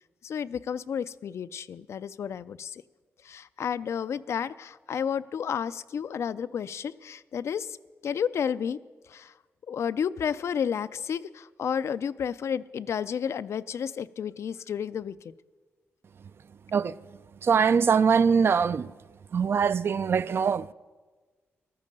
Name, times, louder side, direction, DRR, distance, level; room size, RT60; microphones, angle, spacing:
voice 1, 0.2-2.8 3.2-7.8 8.0-8.8 9.1-9.3 9.7-15.3, left 7 dB, 70° left, 0.4 m, -31 dB
voice 2, 17.4-18.9 19.3-20.7, right 6 dB, 55° right, 0.3 m, -22 dB
14.5 x 12.5 x 5.2 m
cardioid pair, 100°, 5 cm